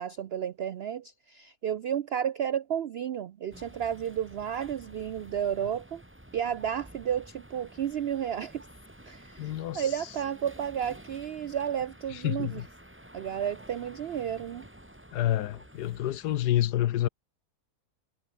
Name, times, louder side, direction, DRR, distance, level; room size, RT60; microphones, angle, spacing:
voice 1, 0.0-6.0 6.3-8.7 9.1-12.6 13.1-14.7, right 9 dB, 80° right, 0.5 m, -32 dB
sound 1, 3.5-16.4, right 1 dB, 5° right, 2.8 m, -51 dB
voice 2, 9.4-10.0 12.1-12.6 15.1-17.1, left 13 dB, 80° left, 1.3 m, -28 dB
omnidirectional pair, 1.7 m